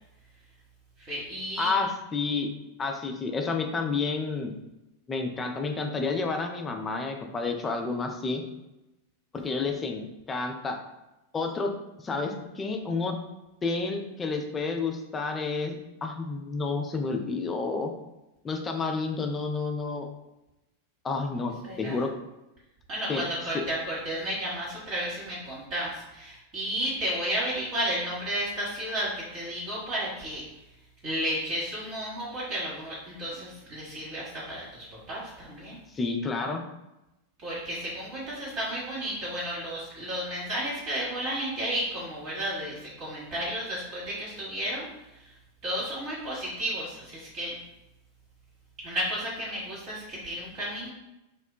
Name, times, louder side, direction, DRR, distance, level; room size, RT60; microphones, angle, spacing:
voice 1, 1.1-1.7 21.6-22.0 22.9-30.4 31.0-35.8 37.4-44.9 45.6-47.6 48.8-50.9, equal, 40° right, -8 dB, 0.9 m, -32 dB
voice 2, 1.6-2.5 2.8-4.5 5.1-8.4 9.3-10.8 11.3-11.7 12.0-13.1 13.6-17.9 18.4-20.1 21.0-21.5 21.8-22.1 23.1-23.2 35.9-36.6, left 4 dB, 20° left, 3 dB, 0.4 m, -30 dB
3.6 x 2.1 x 2.2 m, 0.95 s
figure-of-eight pair, 90°, 0 cm